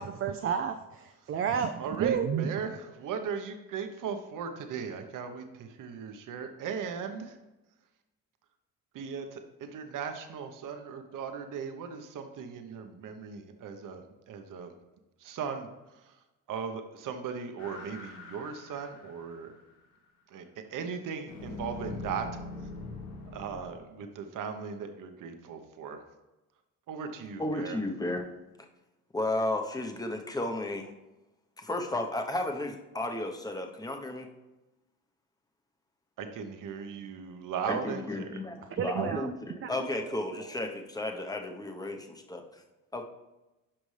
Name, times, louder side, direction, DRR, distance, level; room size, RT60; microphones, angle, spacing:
voice 1, 0.0-2.5 38.7-39.3 39.6-40.4, right 7 dB, 40° right, 7 dB, 0.5 m, -31 dB
voice 2, 1.8-7.4 8.9-14.7 15.2-16.2 16.5-19.5 20.3-20.4 20.7-22.3 23.3-26.0 26.9-27.8 36.2-38.4, right 6 dB, 65° right, 6 dB, 1.0 m, -38 dB
sound 1, 17.6-19.6 21.3-23.6, left 3 dB, 85° left, 2.5 m, -42 dB
voice 3, 27.4-28.3 29.1-30.9 31.6-34.3 37.7-42.4 42.9-43.0, left 2 dB, 10° left, 4 dB, 0.9 m, -33 dB
11.5 x 5.3 x 3.3 m, 1.0 s
cardioid pair, 105°, 34 cm